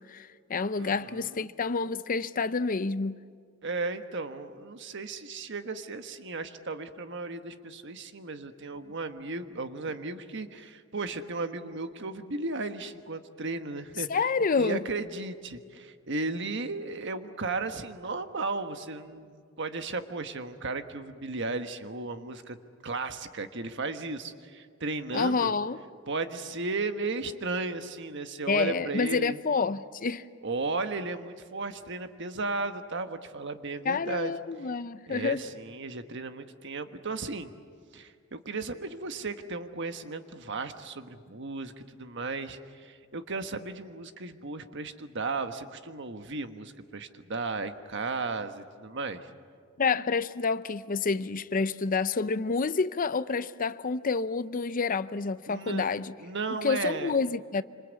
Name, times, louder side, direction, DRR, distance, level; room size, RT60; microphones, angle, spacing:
voice 1, 0.0-3.2 14.1-14.8 25.1-25.8 28.5-30.3 33.8-35.4 49.8-56.1 56.6-57.6, left 4 dB, 40° left, 0.6 m, -28 dB
voice 2, 0.8-1.5 3.6-14.1 14.5-22.6 22.8-25.5 26.1-29.4 30.4-34.3 35.1-37.5 37.9-49.3 55.5-55.9 56.2-57.1, right 3 dB, 60° right, 1.4 m, -35 dB
26.5 x 26.0 x 8.3 m
head